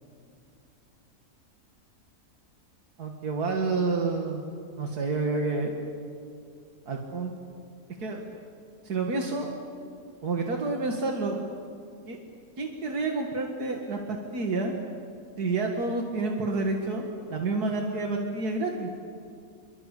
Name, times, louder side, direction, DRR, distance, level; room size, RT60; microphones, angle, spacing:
voice 1, 3.0-4.4 4.8-5.7 6.9-7.3 8.0-8.2 8.8-9.5 10.2-11.4 12.1-12.2 12.6-14.7 15.4-18.9, right 3 dB, 90° right, 1 dB, 2.5 m, -29 dB
26.5 x 24.5 x 8.4 m, 2.4 s
omnidirectional pair, 1.6 m